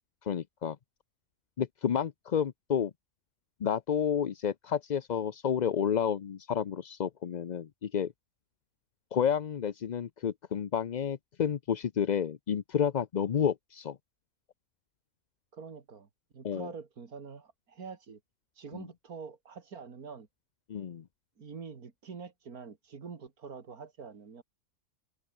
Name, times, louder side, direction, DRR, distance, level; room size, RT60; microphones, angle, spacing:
voice 1, 0.2-0.8 1.6-2.9 3.6-8.1 9.1-14.0 16.4-16.7 18.7-18.8 20.7-21.0, left 8 dB, 50° left, 0.5 m, -30 dB
voice 2, 15.5-16.1 16.3-18.2 18.6-20.3 21.4-24.4, right 5 dB, 90° right, 2.6 m, -45 dB
omnidirectional pair, 1.5 m